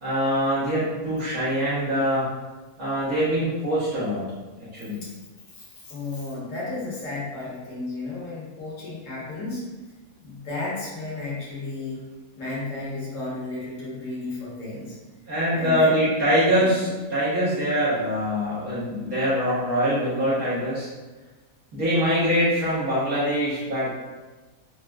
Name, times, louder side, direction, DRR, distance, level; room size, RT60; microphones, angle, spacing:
voice 1, 0.0-2.3 2.8-4.3 4.7-5.0 15.3-20.9 21.7-23.9, equal, 75° right, -11 dB, 1.5 m, -23 dB
voice 2, 5.9-9.6 10.2-12.0 12.4-14.9 15.5-15.9, left 2 dB, 60° left, -7 dB, 1.5 m, -33 dB
4.7 x 2.1 x 2.3 m, 1.2 s
omnidirectional pair, 1.5 m